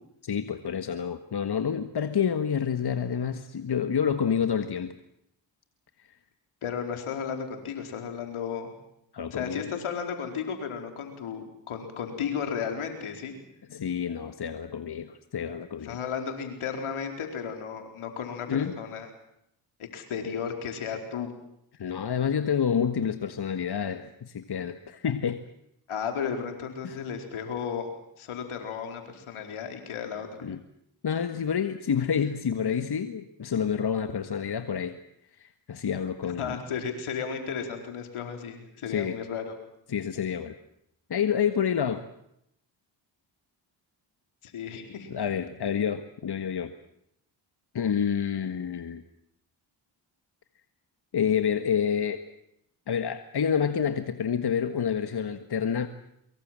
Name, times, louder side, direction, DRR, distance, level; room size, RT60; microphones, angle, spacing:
voice 1, 0.2-4.9 9.1-9.7 13.7-16.0 18.5-18.7 21.8-25.4 26.8-27.0 30.4-30.6 31.0-34.9 35.4-36.6 38.9-39.2 39.9-40.5 41.1-42.0 45.1-46.7 47.7-49.0 51.1-52.2 52.9-55.9, left 7 dB, 50° left, 9 dB, 1.7 m, -28 dB
voice 2, 6.6-8.7 9.3-13.3 15.8-19.1 19.9-21.3 25.9-27.9 28.2-30.4 36.4-39.5 44.4-45.1, left 7 dB, 80° left, 5 dB, 4.5 m, -34 dB
24.0 x 23.0 x 7.6 m, 0.76 s
supercardioid pair, 45°, 49 cm